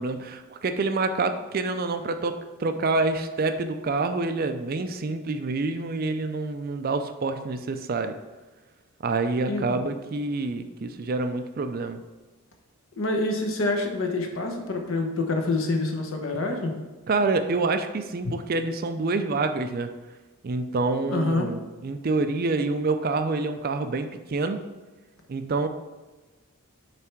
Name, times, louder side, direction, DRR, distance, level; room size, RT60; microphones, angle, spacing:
voice 1, 0.0-2.3 2.6-8.1 9.0-12.0 17.1-19.9 20.4-24.6 25.3-25.7, right 3 dB, 40° right, 8 dB, 0.4 m, -27 dB
voice 2, 9.5-9.9 13.0-16.7 18.2-18.3 21.1-21.5, left 2 dB, 60° left, 3 dB, 1.0 m, -27 dB
7.2 x 3.3 x 4.5 m, 1.2 s
head